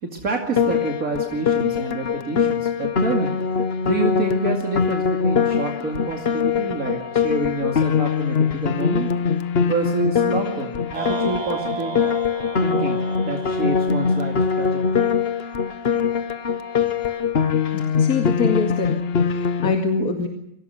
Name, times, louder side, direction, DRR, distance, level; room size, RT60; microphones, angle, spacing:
voice 1, 0.0-3.3 3.8-9.1 9.7-12.0 12.6-15.1, right 3 dB, 70° right, 1 dB, 2.9 m, -28 dB
Piano, 0.6-19.7, left 6 dB, 45° left, 1.2 m, -22 dB
sound 1, 10.9-15.3, right 6 dB, 50° right, 1.4 m, -34 dB
voice 2, 17.7-18.9 19.2-20.3, left 5 dB, 85° left, 4 dB, 2.6 m, -24 dB
25.0 x 17.5 x 8.0 m, 0.81 s
omnidirectional pair, 1.6 m